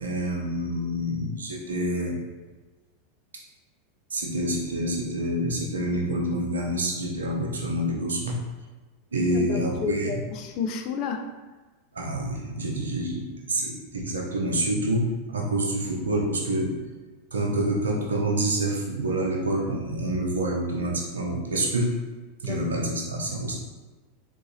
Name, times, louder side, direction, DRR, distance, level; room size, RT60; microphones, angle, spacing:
voice 1, 0.0-2.2 4.1-8.4 9.1-10.2 11.9-16.7 17.3-21.9 22.4-23.5, right 1 dB, 80° right, -1 dB, 0.7 m, -27 dB
voice 2, 9.3-11.3 22.4-22.6, left 6 dB, 50° left, 5 dB, 0.4 m, -31 dB
3.6 x 2.7 x 2.7 m, 1.2 s
hypercardioid pair, 90°, 0 cm